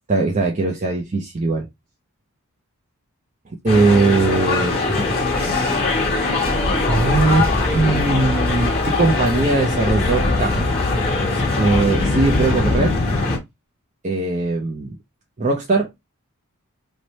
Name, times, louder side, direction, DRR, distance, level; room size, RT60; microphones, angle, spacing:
voice 1, 0.1-1.7 3.6-5.0 6.8-10.8 11.3-13.0 14.0-14.9 15.4-15.9, right 3 dB, 35° right, 0.5 m, -20 dB
sound 1, 3.7-13.4, left 3 dB, 25° left, 1.3 m, -21 dB
sound 2, 5.6-10.7, equal, 10° right, 1.0 m, -29 dB
3.2 x 2.1 x 3.9 m
head